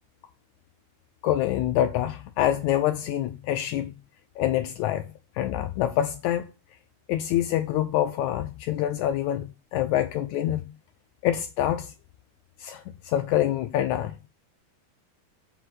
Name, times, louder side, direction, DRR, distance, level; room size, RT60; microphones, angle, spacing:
voice 1, 1.2-3.9 4.4-5.1 5.4-6.5 7.1-10.7 11.2-11.9 12.6-14.3, left 12 dB, 85° left, 1.7 m, -26 dB
6.9 x 4.1 x 6.4 m
omnidirectional pair, 3.9 m